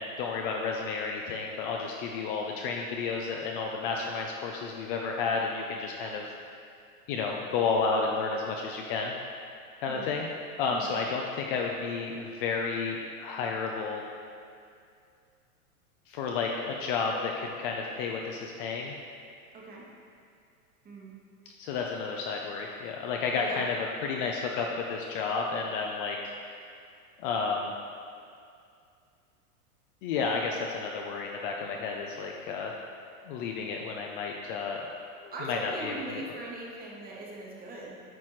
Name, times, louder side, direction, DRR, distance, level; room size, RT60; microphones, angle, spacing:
voice 1, 0.0-6.2 7.1-9.1 9.8-10.3 10.6-14.1 16.1-19.0 21.6-26.3 27.2-27.7 30.0-32.8 33.2-34.8 35.2-36.3, left 4 dB, 40° left, 1 dB, 0.4 m, -31 dB
voice 2, 19.5-19.8 20.8-21.1 23.3-23.6 35.3-38.0, right 2 dB, 20° right, -3 dB, 1.1 m, -40 dB
8.8 x 4.1 x 3.1 m, 2.4 s
hypercardioid pair, 125°, 44 cm